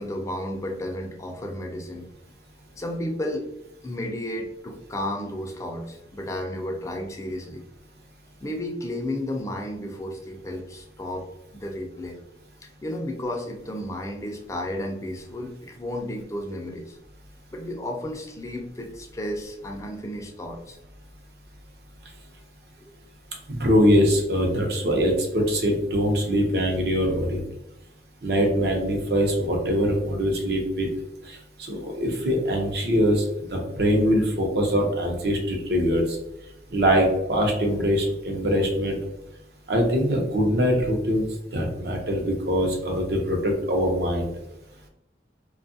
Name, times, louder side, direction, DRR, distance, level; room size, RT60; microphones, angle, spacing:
voice 1, 0.0-2.1 2.7-3.5 3.8-7.6 8.4-12.2 12.6-17.0 17.5-20.8 22.8-23.0, left 1 dB, 15° left, 2 dB, 0.4 m, -33 dB
voice 2, 23.5-27.4 28.2-30.9 31.2-36.2 36.7-39.0 39.7-41.2 41.5-44.3, equal, 60° right, 1 dB, 0.7 m, -23 dB
2.7 x 2.3 x 2.5 m, 0.87 s
head